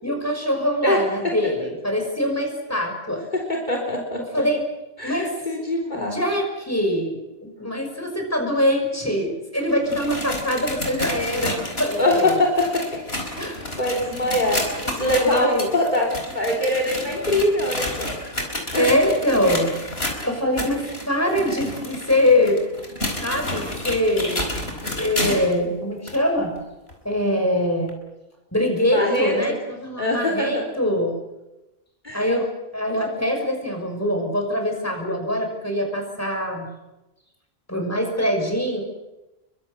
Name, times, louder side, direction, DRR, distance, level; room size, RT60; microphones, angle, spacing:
voice 1, 0.0-3.2 4.3-4.6 5.0-5.3 5.9-12.4 13.4-13.7 14.8-14.9 15.3-15.7 18.8-19.7 20.2-22.6 23.2-24.5 24.8-26.5 27.0-28.0 28.5-31.2 32.1-32.5 32.7-36.7 37.7-38.8, left 1 dB, 15° left, 3 dB, 6.1 m, -23 dB
voice 2, 0.8-1.3 3.3-4.2 5.0-6.2 12.0-14.6 15.0-18.1 18.7-18.8 28.9-29.3 30.0-30.6 32.0-32.2, left 1 dB, 45° left, 0 dB, 3.7 m, -23 dB
sound 1, 9.7-25.6 26.1-26.2 26.9-27.0 27.9-28.0, left 1 dB, 80° left, 5.0 m, -30 dB
29.0 x 23.5 x 6.8 m, 0.99 s
omnidirectional pair, 1.0 m